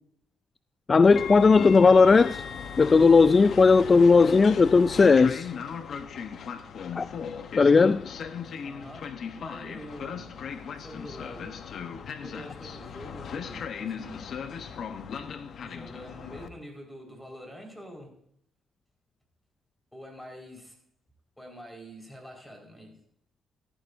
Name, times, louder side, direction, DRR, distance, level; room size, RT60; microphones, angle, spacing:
voice 1, 0.9-2.4 2.8-5.5 6.9-7.1 7.6-8.0, left 4 dB, 35° left, 0.3 m, -17 dB
Train, 1.0-16.5, left 7 dB, 60° left, 1.0 m, -38 dB
voice 2, 8.6-10.3 10.8-11.6 12.2-14.3 15.6-18.2 19.9-20.8 21.4-23.0, equal, 5° left, 4.6 m, -45 dB
14.0 x 14.0 x 2.6 m
cardioid pair, 85°, 0 cm